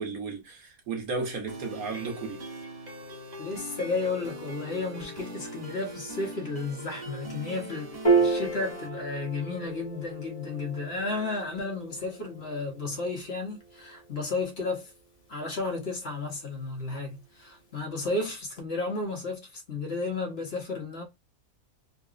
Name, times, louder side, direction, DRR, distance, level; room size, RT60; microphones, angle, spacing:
voice 1, 0.0-2.4, right 4 dB, 85° right, 1.6 m, -34 dB
sound 1, 1.5-8.9, right 1 dB, 35° right, 0.9 m, -41 dB
voice 2, 3.4-14.9 15.3-21.0, left 3 dB, 50° left, 1.3 m, -33 dB
Piano, 8.0-14.7, right 4 dB, 30° left, 1.0 m, -31 dB
4.0 x 2.3 x 2.4 m
omnidirectional pair, 1.5 m